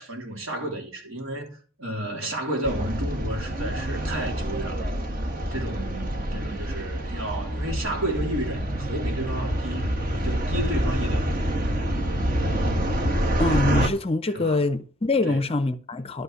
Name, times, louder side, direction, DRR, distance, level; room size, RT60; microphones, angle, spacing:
voice 1, 0.0-4.9 5.5-9.9 10.1-11.3 14.3-14.6 15.2-15.5, right 1 dB, 70° right, 3.4 m, -32 dB
sound 1, 2.6-13.9, equal, 40° right, 1.3 m, -27 dB
voice 2, 13.4-16.2, left 2 dB, 25° left, 0.6 m, -24 dB
11.5 x 5.5 x 6.3 m
head